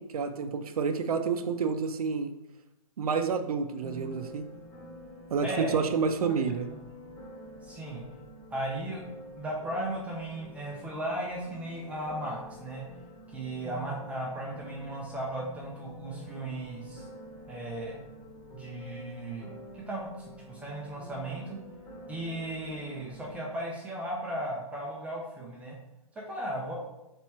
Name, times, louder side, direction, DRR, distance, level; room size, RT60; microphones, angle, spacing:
voice 1, 0.0-2.3 3.0-4.4 5.3-6.7, right 5 dB, 75° right, 8 dB, 0.5 m, -29 dB
sound 1, 3.8-23.4, equal, 20° left, 1.1 m, -48 dB
voice 2, 5.4-5.9 6.2-6.5 7.6-8.0 8.5-9.0 9.4-12.8 13.3-17.1 17.5-18.0 18.5-21.6 22.1-25.8 26.3-26.7, right 1 dB, 5° right, -3 dB, 0.4 m, -36 dB
3.4 x 2.8 x 4.3 m, 0.95 s
hypercardioid pair, 145°, 19 cm